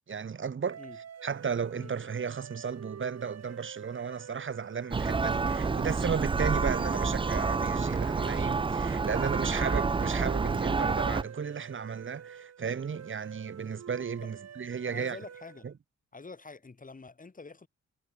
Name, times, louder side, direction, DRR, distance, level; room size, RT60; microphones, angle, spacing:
voice 1, 0.1-0.8 1.2-15.2 15.6-15.7, right 6 dB, 40° right, 1.8 m, -34 dB
sound 1, 0.7-15.7, right 8 dB, 55° right, 3.2 m, -47 dB
Church bell, 4.9-11.2, right 4 dB, 15° right, 0.4 m, -28 dB
voice 2, 14.9-15.7 16.1-17.7, left 3 dB, 25° left, 5.4 m, -46 dB
cardioid pair, 105°, 30 cm